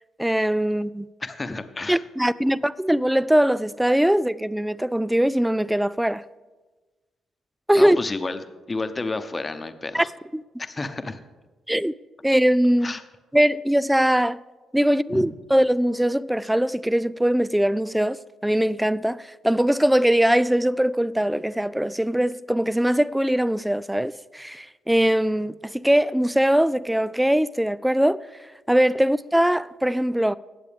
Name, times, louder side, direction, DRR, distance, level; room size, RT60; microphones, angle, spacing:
voice 1, 0.2-1.1 1.9-6.2 7.7-8.0 9.9-10.0 10.3-10.4 11.7-11.9 12.2-12.9 13.3-14.4 14.7-28.2 28.7-30.4, equal, 5° right, 0.4 m, -21 dB
voice 2, 1.2-2.0 7.7-8.4 8.7-10.1 10.6-11.2 12.8-13.0 15.1-15.3, left 3 dB, 30° left, 1.0 m, -30 dB
19.0 x 7.6 x 3.6 m
hypercardioid pair, 45°, 0 cm